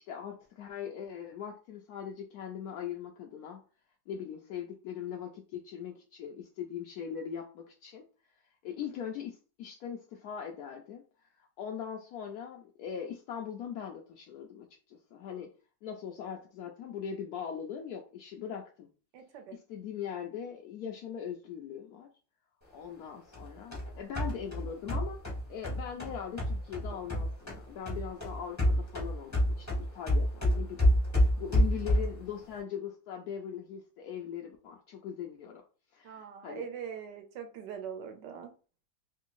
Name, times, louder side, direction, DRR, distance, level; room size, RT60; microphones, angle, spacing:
voice 1, 0.0-3.6 4.1-8.0 8.6-11.0 11.4-15.5 15.8-18.9 19.5-22.1 22.7-25.2 25.5-31.0 31.2-35.6 35.9-36.6, left 8 dB, 75° left, 0.8 m, -40 dB
voice 2, 19.1-19.6 36.0-38.5, right 8 dB, 70° right, 1.3 m, -42 dB
sound 1, 23.3-27.6 27.9-32.2, equal, 15° left, 0.6 m, -28 dB
3.4 x 2.7 x 3.0 m
omnidirectional pair, 2.1 m